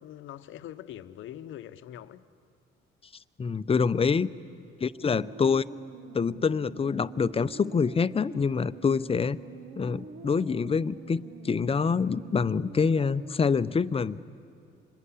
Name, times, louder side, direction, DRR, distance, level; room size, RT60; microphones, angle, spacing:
voice 1, 0.0-2.2 5.0-5.2, left 11 dB, 80° left, 0.8 m, -43 dB
voice 2, 3.4-4.3 4.8-5.6 6.1-9.4 9.8-14.2, left 5 dB, 30° left, 0.6 m, -26 dB
sound 1, 4.8-13.4, right 5 dB, 65° right, 1.1 m, -46 dB
26.5 x 20.5 x 9.9 m
cardioid pair, 90°, 20 cm